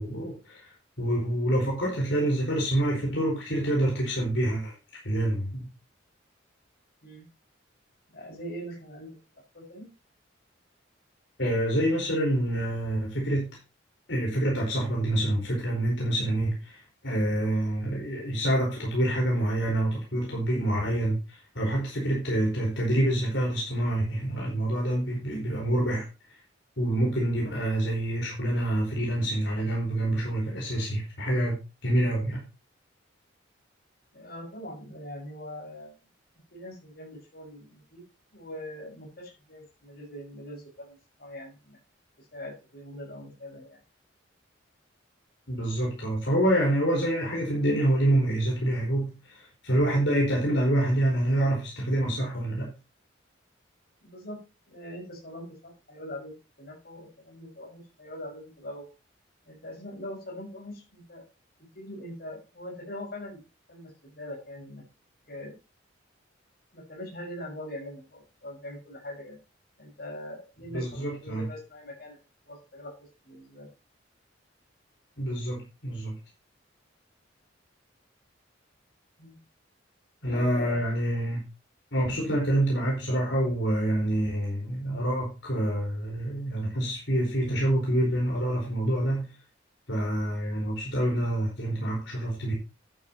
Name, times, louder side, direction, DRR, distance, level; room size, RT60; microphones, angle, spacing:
voice 1, 0.0-4.7 5.0-5.7 11.4-13.6 14.1-26.1 26.8-31.6 31.8-32.4 45.5-52.7 70.7-71.5 75.2-76.1 80.2-81.4 81.9-89.3 89.9-92.5, right 1 dB, 70° left, 4.6 m, -27 dB
voice 2, 8.1-9.9 34.1-35.9 36.5-38.0 38.3-41.8 42.2-43.8 54.0-58.9 59.5-61.2 61.6-63.4 63.7-64.8 65.3-65.5 66.7-69.4 69.8-72.2 72.5-73.7 79.2-79.4 80.3-80.9, left 1 dB, 50° left, 5.6 m, -42 dB
11.0 x 10.5 x 2.9 m
head